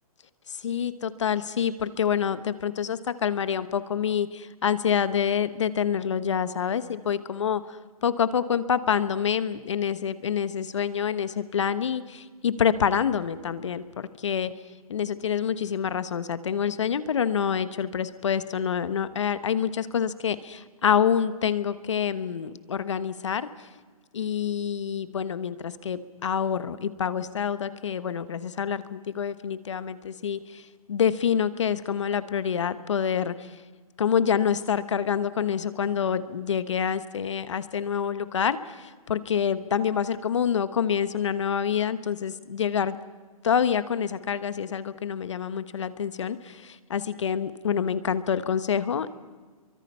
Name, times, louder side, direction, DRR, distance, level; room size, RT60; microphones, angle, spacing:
voice 1, 0.5-14.5 14.9-23.5 24.1-30.6 30.9-33.6 34.0-43.0 43.4-49.1, left 8 dB, 55° left, 13 dB, 1.3 m, -27 dB
30.0 x 23.5 x 5.6 m, 1.4 s
hypercardioid pair, 175°, 19 cm